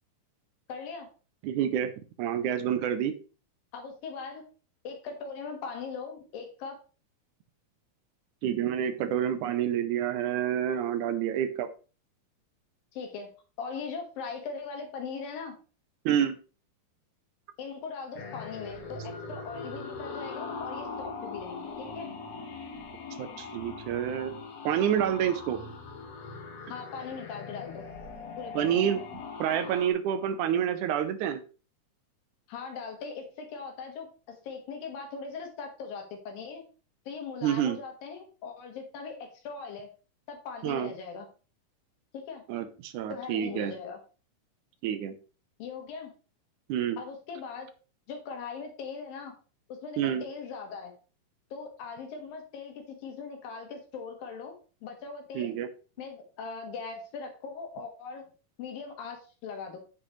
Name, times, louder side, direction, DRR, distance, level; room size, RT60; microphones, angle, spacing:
voice 1, 0.7-1.1 3.7-4.4 4.9-6.8 12.9-13.3 13.6-15.6 17.6-22.1 26.7-27.8 28.4-28.8 32.5-36.6 37.1-39.9 40.3-41.3 42.1-42.4 43.1-44.0 45.6-46.1 47.0-47.7 48.1-49.3 49.7-50.9 51.5-55.6 56.0-58.2 58.6-59.8, left 5 dB, 90° left, 3 dB, 3.4 m, -40 dB
voice 2, 1.4-1.9 2.2-3.2 8.4-11.7 16.1-16.4 23.2-24.3 24.7-25.6 28.6-29.0 29.4-31.4 37.4-37.8 40.6-40.9 42.5-43.7 44.8-45.1 46.7-47.0 50.0-50.2 55.4-55.7, right 9 dB, 75° right, 11 dB, 1.9 m, -28 dB
sound 1, 18.1-29.9, left 4 dB, 55° left, 2.1 m, -41 dB
8.5 x 7.8 x 3.1 m, 0.35 s
omnidirectional pair, 3.9 m